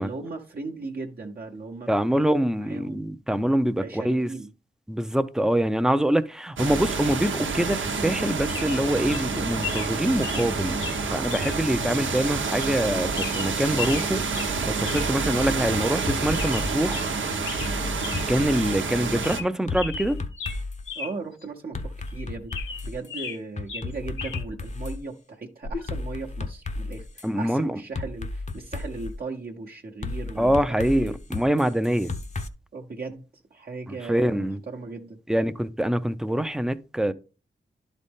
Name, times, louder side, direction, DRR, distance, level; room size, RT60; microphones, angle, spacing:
voice 1, 0.0-3.0 3.8-4.5 20.9-31.2 32.7-35.2, right 3 dB, 50° right, 0.9 m, -37 dB
voice 2, 1.9-4.3 4.9-10.8 11.1-14.4 14.7-17.0 18.3-20.2 27.2-27.8 30.4-32.1 34.1-34.6 35.3-37.1, right 1 dB, 5° right, 0.5 m, -24 dB
sound 1, 6.6-19.4, right 4 dB, 85° right, 0.9 m, -28 dB
sound 2, 8.1-8.2 8.5-8.8 9.1-9.3 9.6-9.9 10.2-10.5 10.8-11.0 11.3-11.6 11.9-12.0 12.6-12.8 13.1-14.1 14.3-14.5 14.8-15.1 15.4-15.5 15.8-16.0 16.3-17.1 17.4-17.7 18.0-18.2 18.6-18.7 19.1-19.5 19.7-21.1 21.4-21.5 22.1-23.4 23.7-24.4 25.6-25.9, left 5 dB, 85° left, 1.2 m, -35 dB
sound 3, 16.1-16.7 17.6-19.0 19.7-20.9 21.7-23.1 23.6-25.0 25.9-27.3 27.9-29.1 30.0-32.5, left 3 dB, 35° left, 0.7 m, -33 dB
11.0 x 4.1 x 3.6 m
wide cardioid pair, 80°, 19 cm